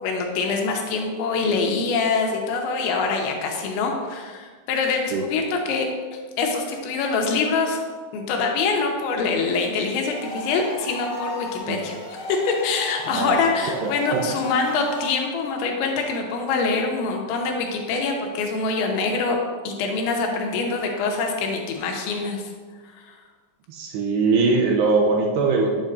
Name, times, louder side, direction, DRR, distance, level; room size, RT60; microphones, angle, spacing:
voice 1, 0.0-5.9 6.4-7.8 8.1-12.0 12.3-19.4 19.6-22.4 23.1-23.2, left 4 dB, 80° left, 1 dB, 3.2 m, -24 dB
sound 1, 10.1-15.1, left 3 dB, 60° left, 2.3 m, -35 dB
voice 2, 13.1-14.3 23.7-25.9, right 3 dB, 85° right, 0 dB, 2.6 m, -22 dB
8.9 x 7.5 x 2.6 m, 1.5 s
omnidirectional pair, 5.2 m